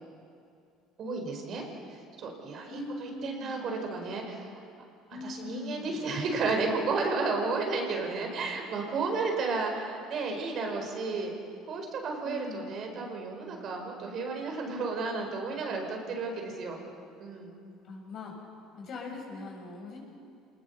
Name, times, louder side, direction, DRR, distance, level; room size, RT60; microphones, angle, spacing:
voice 1, 1.0-1.6 1.9-4.6 5.2-11.3 11.7-16.8 17.2-17.5, right 3 dB, 50° right, 2 dB, 4.7 m, -32 dB
voice 2, 2.7-3.7 5.1-6.1 12.2-12.7 17.8-18.3 18.7-20.0, left 3 dB, 50° left, 0 dB, 6.9 m, -41 dB
27.0 x 20.0 x 6.9 m, 2.4 s
supercardioid pair, 110°, 0 cm